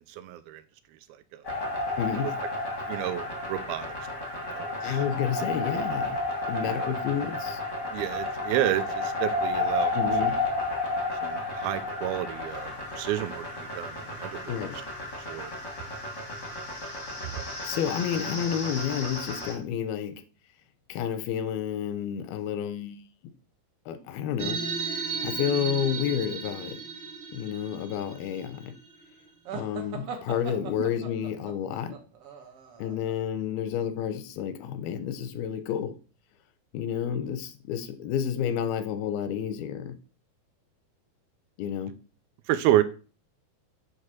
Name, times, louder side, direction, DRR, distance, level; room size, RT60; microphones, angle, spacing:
voice 1, 0.1-0.6 1.3-1.4 2.9-3.9 4.5-5.0 6.6-6.9 7.9-9.9 10.2-10.3 11.2-14.6 15.3-15.5 17.2-17.4 42.5-42.8, right 13 dB, 90° right, 2.5 m, -30 dB
sound 1, 1.4-19.5, left 2 dB, 65° left, 0.7 m, -32 dB
voice 2, 2.0-2.3 4.6-6.2 6.5-7.6 9.9-10.4 14.5-14.8 17.6-20.2 20.9-23.1 23.9-24.6 25.2-26.8 27.3-28.7 29.5-32.0 32.8-35.9 36.7-39.9 41.6-41.9, left 9 dB, 85° left, 2.6 m, -30 dB
sound 2, 24.4-29.3, right 5 dB, 50° right, 1.4 m, -35 dB
sound 3, 29.5-33.1, right 6 dB, 70° right, 1.3 m, -40 dB
8.4 x 3.2 x 6.1 m
omnidirectional pair, 4.2 m